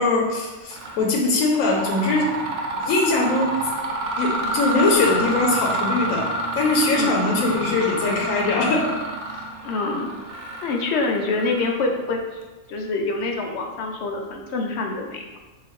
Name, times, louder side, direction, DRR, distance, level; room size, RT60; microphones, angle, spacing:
voice 1, 0.0-2.3 2.7-3.5 4.2-6.3 6.5-8.9, left 3 dB, 90° left, -1 dB, 1.0 m, -21 dB
Mechanisms, 0.7-1.0 1.4-12.0, right 1 dB, 80° right, 1.0 m, -28 dB
voice 2, 7.0-7.3 9.6-10.1 10.6-12.4 12.7-15.4, left 3 dB, 65° left, 1 dB, 0.8 m, -26 dB
3.7 x 2.8 x 3.0 m, 1.2 s
omnidirectional pair, 1.4 m